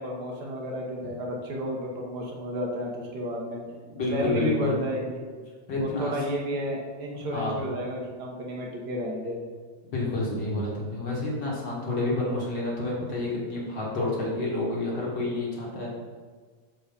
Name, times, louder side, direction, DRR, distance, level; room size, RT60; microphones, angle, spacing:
voice 1, 0.0-3.6 4.1-5.2 5.8-9.4, equal, 55° right, -2 dB, 1.1 m, -31 dB
voice 2, 3.9-4.8 5.7-6.2 7.1-7.7 9.9-15.9, left 2 dB, 45° left, -4 dB, 2.2 m, -29 dB
7.1 x 5.6 x 5.1 m, 1.5 s
omnidirectional pair, 3.3 m